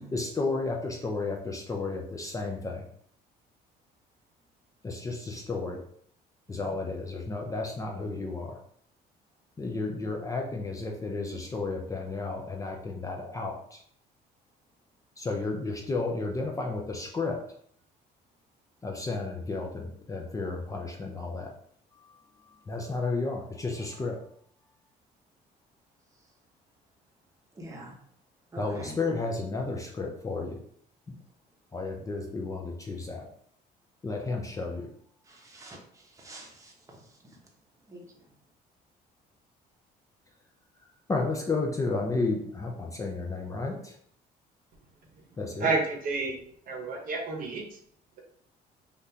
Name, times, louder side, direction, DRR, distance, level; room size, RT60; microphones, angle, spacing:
voice 1, 0.1-2.9 4.8-5.8 6.5-8.6 9.6-13.8 15.2-17.4 18.8-21.5 21.9-24.2 28.6-30.6 31.1-31.2 31.7-33.3 34.0-34.9 41.1-43.9 45.4-45.7, left 3 dB, 20° left, 1 dB, 0.5 m, -32 dB
voice 2, 27.6-27.9 28.5-28.9 35.3-35.8 36.2-36.7 37.9-38.0, right 1 dB, 20° right, 0 dB, 0.8 m, -45 dB
voice 3, 45.6-46.3 46.7-47.8, right 3 dB, 55° right, 1 dB, 0.8 m, -30 dB
3.4 x 2.4 x 2.7 m, 0.64 s
cardioid pair, 110°, 17 cm